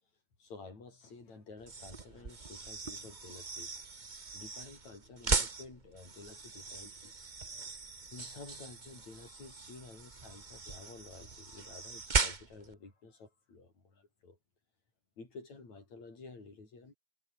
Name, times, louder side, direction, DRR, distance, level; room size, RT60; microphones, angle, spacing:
voice 1, 0.4-7.1 8.1-14.4 15.2-17.0, left 3 dB, 70° left, 7.9 m, -52 dB
sound 1, 1.6-12.7, right 4 dB, 75° right, 0.4 m, -38 dB
omnidirectional pair, 3.3 m